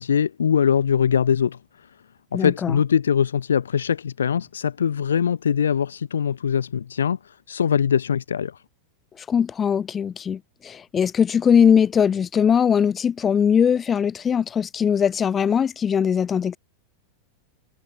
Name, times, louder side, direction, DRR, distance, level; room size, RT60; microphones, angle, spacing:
voice 1, 0.0-1.6 2.3-7.2 7.5-8.6, left 7 dB, 70° left, 2.9 m, -22 dB
voice 2, 2.3-2.8 9.2-16.6, left 7 dB, 20° left, 7.0 m, -20 dB
figure-of-eight pair, 90°, 0 cm